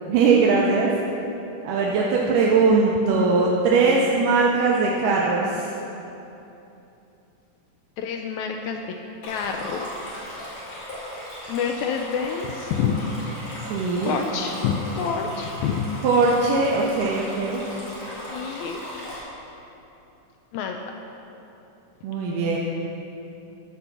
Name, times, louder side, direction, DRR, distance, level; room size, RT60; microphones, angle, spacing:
voice 1, 0.1-0.9 1.6-5.7 13.7-14.2 16.0-17.7 22.0-22.6, right 4 dB, 90° right, -3 dB, 2.3 m, -20 dB
voice 2, 8.0-9.0 9.2-10.7 11.5-13.0 14.0-15.9 18.3-18.8 20.5-20.8, left 6 dB, 80° left, 3 dB, 1.8 m, -28 dB
Stream, 9.2-19.2, left 1 dB, 60° left, 3.5 m, -37 dB
11.5 x 4.6 x 6.7 m, 2.9 s
omnidirectional pair, 3.6 m